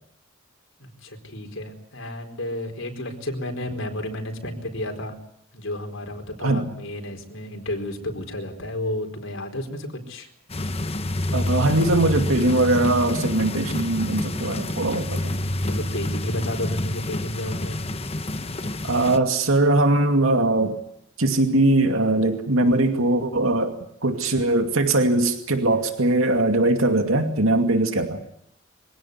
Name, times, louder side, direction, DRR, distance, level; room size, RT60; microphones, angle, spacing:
voice 1, 0.8-5.2 5.5-10.3 15.6-17.8, left 1 dB, 70° left, 4 dB, 4.5 m, -32 dB
sound 1, 10.5-19.2, left 1 dB, 30° left, 1.1 m, -28 dB
voice 2, 11.3-15.3 18.8-20.8 21.2-23.7 24.0-28.2, right 2 dB, 85° right, 5 dB, 2.4 m, -21 dB
24.5 x 17.0 x 9.4 m, 0.73 s
head